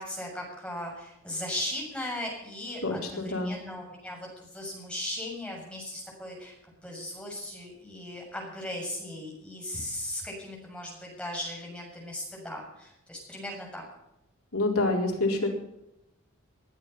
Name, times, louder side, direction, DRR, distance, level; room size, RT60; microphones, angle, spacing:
voice 1, 0.0-6.5 6.8-13.8, left 1 dB, 5° left, -2 dB, 6.8 m, -37 dB
voice 2, 2.8-3.5 14.5-15.5, left 2 dB, 80° left, 0 dB, 4.2 m, -27 dB
21.5 x 10.5 x 5.6 m, 0.86 s
head